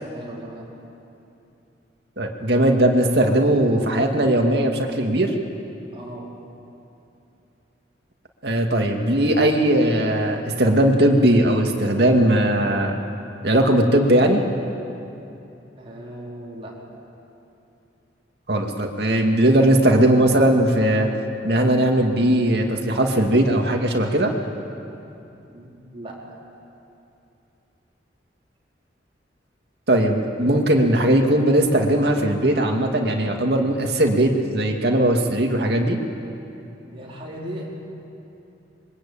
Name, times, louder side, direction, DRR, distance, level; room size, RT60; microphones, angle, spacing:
voice 1, 0.1-0.7 5.9-6.3 15.7-16.8 25.5-26.4 36.9-37.7, right 1 dB, 30° right, -4 dB, 4.3 m, -37 dB
voice 2, 2.2-5.3 8.4-13.0 13.4-14.4 18.5-21.1 21.4-24.3 29.9-36.0, right 1 dB, 60° right, 2 dB, 2.5 m, -19 dB
26.0 x 23.0 x 8.8 m, 2.8 s
head